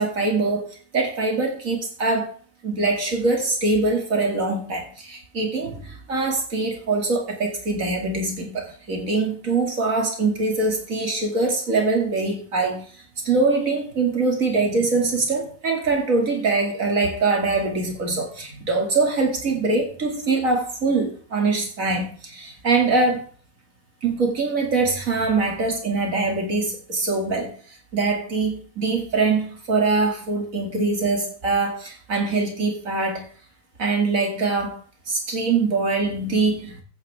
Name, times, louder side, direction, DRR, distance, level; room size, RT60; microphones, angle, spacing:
voice 1, 0.0-2.3 2.6-23.3 24.0-27.6 27.9-33.3 33.8-34.8 35.1-36.8, right 3 dB, 65° right, 2 dB, 2.8 m, -23 dB
14.0 x 9.2 x 3.5 m, 0.42 s
omnidirectional pair, 1.5 m